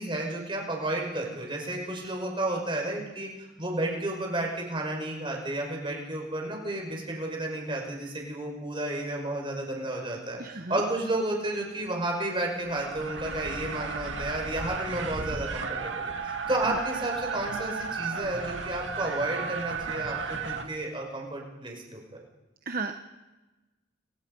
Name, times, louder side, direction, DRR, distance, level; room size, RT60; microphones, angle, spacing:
voice 1, 0.0-22.0, right 1 dB, 25° right, 1 dB, 5.6 m, -32 dB
voice 2, 10.4-10.7 22.7-23.0, right 4 dB, 50° right, 6 dB, 1.1 m, -33 dB
sound 1, 12.5-20.6, right 4 dB, 75° right, 2.3 m, -34 dB
29.0 x 25.0 x 5.4 m, 1.1 s
head